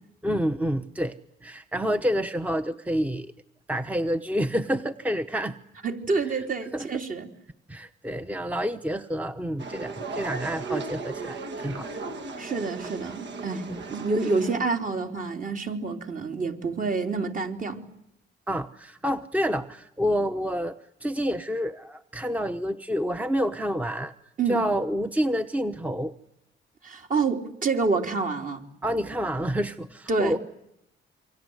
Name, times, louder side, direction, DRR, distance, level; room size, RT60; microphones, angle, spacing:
voice 1, 0.2-1.2 1.4-3.3 3.7-5.6 6.2-6.3 6.7-6.9 7.7-12.0 13.7-13.8 18.5-20.8 21.0-24.1 24.5-26.1 28.8-30.4, equal, 5° right, 1.1 m, -28 dB
voice 2, 5.8-7.3 12.4-17.9 24.4-24.6 26.8-28.6 30.1-30.3, right 4 dB, 40° right, 3.7 m, -28 dB
sound 1, 9.6-14.6, right 4 dB, 65° right, 2.3 m, -36 dB
28.0 x 25.0 x 8.2 m
cardioid pair, 90°, 20 cm